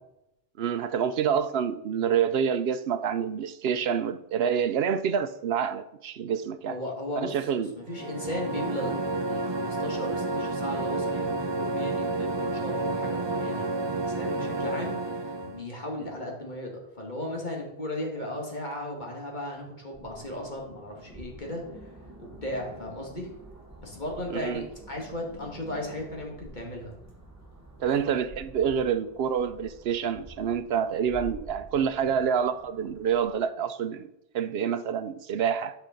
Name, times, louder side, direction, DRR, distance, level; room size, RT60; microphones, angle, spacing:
voice 1, 0.6-6.8 7.2-7.7 24.3-24.7 27.8-34.1 34.3-35.7, right 7 dB, 75° right, 12 dB, 0.8 m, -27 dB
voice 2, 6.7-21.9 22.2-23.3 23.8-26.9 32.1-32.2, left 1 dB, 45° left, 0 dB, 2.3 m, -36 dB
sound 1, 7.8-15.7, right 2 dB, 35° right, 0.5 m, -30 dB
sound 2, 19.9-33.3, right 1 dB, 15° right, 2.4 m, -48 dB
9.9 x 5.6 x 5.1 m, 0.86 s
omnidirectional pair, 1.0 m